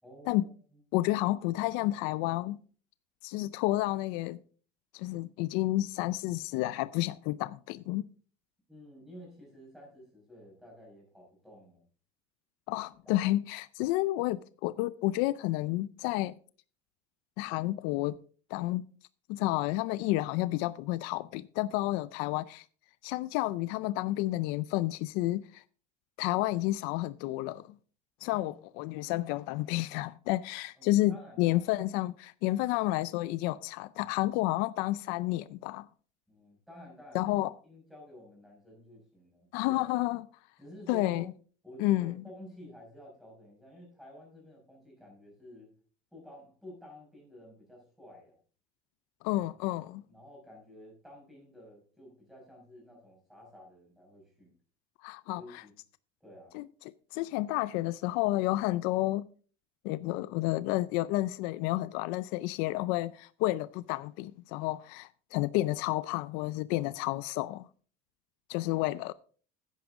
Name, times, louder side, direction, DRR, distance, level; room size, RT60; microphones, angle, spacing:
voice 1, 0.0-0.8 8.7-11.9 13.0-13.2 28.2-28.9 30.8-31.6 32.7-32.8 36.3-37.3 37.6-39.9 40.6-41.3 41.6-45.7 46.1-48.4 49.3-49.5 50.1-54.5 55.3-55.7 56.2-56.6, equal, ahead, 5.3 m, -52 dB
voice 2, 0.9-2.6 3.2-4.4 4.9-8.1 12.7-16.4 17.4-18.1 18.5-18.8 19.3-22.6 23.0-25.6 26.2-27.7 28.2-35.9 37.1-37.5 39.5-40.2 40.9-41.3 41.8-42.1 49.2-50.0 55.0-55.4 56.5-56.6 57.1-59.2 59.8-67.6 68.5-69.1, left 17 dB, 75° left, 0.4 m, -30 dB
10.5 x 9.3 x 3.7 m
cardioid pair, 150°, 16 cm